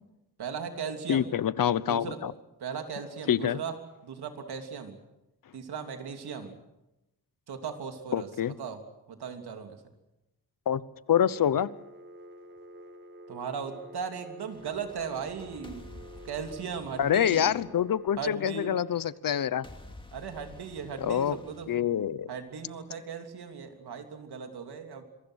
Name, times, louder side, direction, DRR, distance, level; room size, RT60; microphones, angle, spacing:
voice 1, 0.4-1.3 1.8-2.2 2.6-3.8 4.0-5.0 5.5-6.6 7.5-8.8 9.1-9.8 13.3-17.5 18.2-18.7 20.1-21.8 22.3-25.0, right 6 dB, 85° right, 5 dB, 3.2 m, -37 dB
voice 2, 1.1-2.3 3.3-3.6 8.1-8.5 10.7-10.8 11.1-11.7 17.0-19.6 21.0-21.4 21.7-22.3, left 9 dB, 60° left, 18 dB, 0.9 m, -26 dB
Telephone, 11.3-18.1, equal, 30° right, 2.0 m, -49 dB
sound 1, 14.4-18.5 19.6-22.5, left 1 dB, 15° left, 2.7 m, -51 dB
26.0 x 23.5 x 6.4 m, 0.95 s
wide cardioid pair, 135°, 38 cm